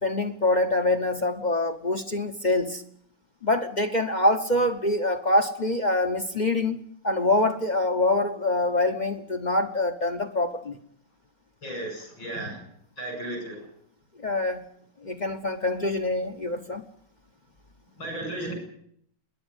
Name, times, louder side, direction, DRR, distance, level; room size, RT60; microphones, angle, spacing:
voice 1, 0.0-2.8 3.4-10.8 14.2-14.7 15.0-16.8, left 2 dB, 35° left, 10 dB, 0.8 m, -25 dB
voice 2, 11.6-12.6 13.0-13.6 18.0-18.5, right 1 dB, 85° left, 4 dB, 8.5 m, -34 dB
26.5 x 11.0 x 9.9 m, 0.69 s
omnidirectional pair, 2.0 m